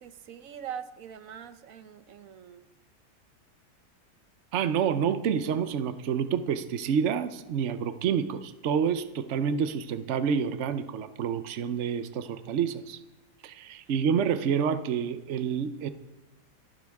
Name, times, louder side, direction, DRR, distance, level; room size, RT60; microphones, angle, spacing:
voice 1, 0.0-2.7, right 8 dB, 60° right, 10 dB, 0.9 m, -42 dB
voice 2, 4.5-13.0 13.4-15.9, right 7 dB, 80° right, 11 dB, 0.6 m, -28 dB
28.0 x 9.8 x 3.6 m, 1.2 s
omnidirectional pair, 2.1 m